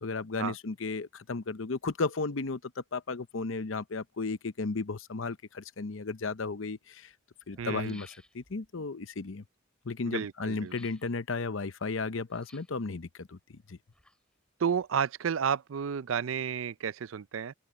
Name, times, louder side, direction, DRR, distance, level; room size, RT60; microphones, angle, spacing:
voice 1, 0.0-7.1 7.5-9.4 9.8-13.8, left 3 dB, 70° left, 0.8 m, -34 dB
sound 1, 7.1-7.2 7.4-8.7 10.6-11.1 12.3-12.9 13.7-14.5 14.8-14.9, left 1 dB, 5° left, 5.9 m, -57 dB
voice 2, 7.6-8.0 10.0-10.7 14.6-17.5, right 7 dB, 75° right, 0.4 m, -31 dB
open air
head